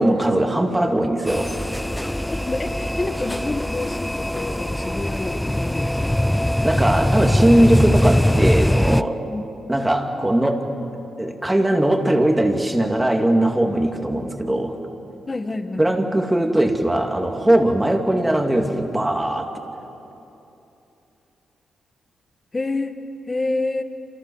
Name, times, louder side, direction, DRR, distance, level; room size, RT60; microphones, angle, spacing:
voice 1, 0.0-1.5 6.6-9.2 9.7-10.7 11.2-14.8 15.8-19.5, right 1 dB, 10° right, 3 dB, 2.6 m, -20 dB
sound 1, 1.3-9.0, left 1 dB, 5° left, 0.5 m, -21 dB
voice 2, 2.3-6.2 9.3-9.4 15.3-16.1 22.5-23.0 23.3-23.8, left 2 dB, 25° left, 7 dB, 1.6 m, -28 dB
28.5 x 28.5 x 7.2 m, 2.9 s
cardioid pair, 110°, 0 cm